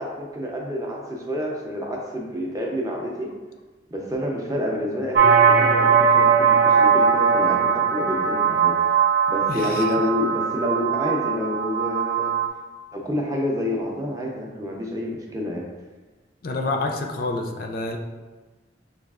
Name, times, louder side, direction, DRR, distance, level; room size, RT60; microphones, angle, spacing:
voice 1, 0.0-3.3 3.9-8.8 9.3-12.4 12.9-15.7, left 1 dB, 20° right, -1 dB, 0.5 m, -28 dB
sound 1, 5.1-12.5, right 6 dB, 85° right, 0.6 m, -19 dB
voice 2, 9.5-9.9 16.4-18.0, left 2 dB, 50° left, 3 dB, 0.3 m, -28 dB
6.2 x 2.3 x 2.3 m, 1.2 s
head